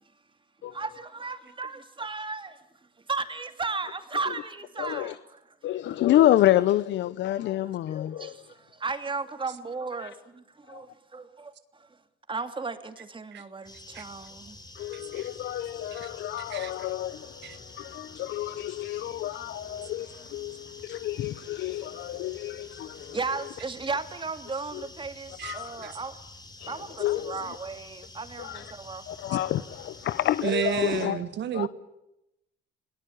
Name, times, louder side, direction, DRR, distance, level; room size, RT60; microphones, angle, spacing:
voice 1, 0.7-2.6 3.1-5.4 5.7-5.8 7.5-7.6 7.9-11.9 12.3-14.6 20.5-20.6 23.1-26.2 26.7-29.0, right 4 dB, 25° right, 2.7 m, -35 dB
voice 2, 4.8-5.2 5.6-8.4 10.0-10.1 10.7-10.8 14.8-23.2 24.7-24.8 25.4-25.9 26.6-27.5 28.4-28.7 29.1-31.2 31.5-31.7, left 13 dB, 60° left, 0.9 m, -28 dB
sound 1, 13.6-31.1, left 2 dB, 20° left, 4.4 m, -48 dB
voice 3, 14.9-15.3 15.9-16.1 16.5-16.7 17.4-17.6 25.4-25.9 30.4-31.7, right 9 dB, 60° right, 1.7 m, -32 dB
27.5 x 19.0 x 8.7 m
supercardioid pair, 85°, 21 cm